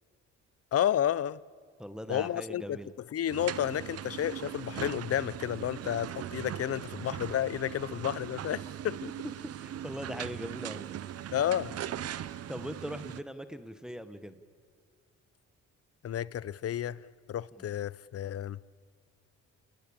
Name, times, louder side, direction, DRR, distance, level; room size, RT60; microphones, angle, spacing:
voice 1, 0.7-1.4 2.1-2.8 3.1-9.0 11.3-11.7 16.0-18.6, left 10 dB, 50° left, 0.7 m, -31 dB
voice 2, 1.8-2.9 9.4-10.9 12.5-14.4 17.6-17.7, equal, ahead, 1.3 m, -40 dB
sound 1, 3.3-13.2, right 10 dB, 55° right, 0.8 m, -40 dB
28.5 x 18.5 x 8.8 m
cardioid pair, 90°, 30 cm